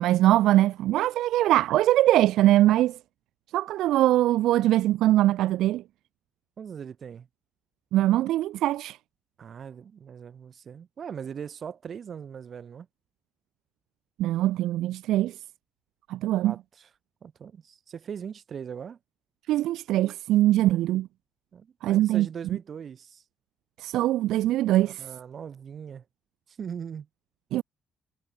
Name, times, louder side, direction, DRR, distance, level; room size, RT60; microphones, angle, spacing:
voice 1, 0.0-3.0 3.5-5.8 7.9-9.0 14.2-15.4 16.1-16.5 19.5-21.1 21.8-22.3 23.8-25.1 27.5-27.6, right 14 dB, 85° right, 0.8 m, -22 dB
voice 2, 6.6-7.3 9.4-12.9 16.4-16.6 17.2-19.0 21.5-23.2 24.7-26.0 26.5-27.1, right 7 dB, 50° right, 4.6 m, -40 dB
cardioid pair, 90°, 0 cm